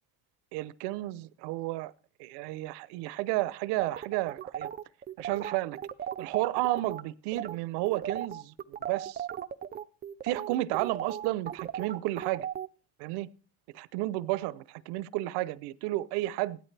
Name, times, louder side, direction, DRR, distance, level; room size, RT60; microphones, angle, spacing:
voice 1, 0.5-1.9 2.2-4.7 5.2-5.8 6.2-9.3 10.2-12.5 13.0-13.3 13.7-16.6, right 18 dB, 85° right, 0.8 m, -32 dB
sound 1, 3.8-7.0 7.3-7.6 7.9-12.7, right 9 dB, 25° right, 0.5 m, -37 dB
16.0 x 12.0 x 3.3 m
cardioid pair, 120°, 40 cm